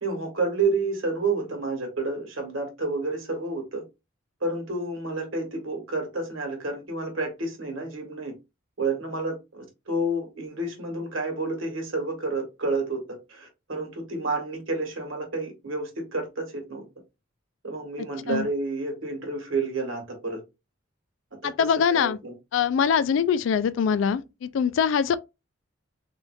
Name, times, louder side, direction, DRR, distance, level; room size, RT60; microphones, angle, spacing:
voice 1, 0.0-3.8 4.4-8.3 8.8-16.8 17.6-20.4 21.4-22.3 22.9-23.2, right 3 dB, 85° right, 1.4 m, -30 dB
voice 2, 21.4-22.2 22.5-25.2, left 7 dB, 70° left, 0.3 m, -23 dB
3.5 x 2.6 x 2.2 m
head